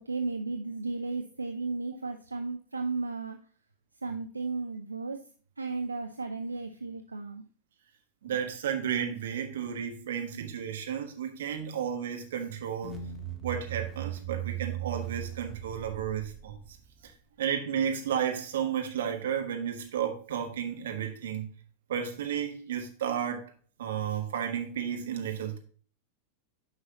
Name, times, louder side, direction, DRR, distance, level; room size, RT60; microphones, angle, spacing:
voice 1, 0.0-3.4 4.0-5.2 5.6-7.4, right 3 dB, 80° right, 0.5 m, -34 dB
voice 2, 8.2-13.0 13.4-16.6 17.4-21.5 21.9-23.5 23.8-25.6, right 8 dB, 60° right, 1.4 m, -32 dB
sound 1, 12.8-17.1, right 11 dB, 5° left, 1.3 m, -38 dB
9.7 x 5.6 x 2.8 m
figure-of-eight pair, 90°, 0 cm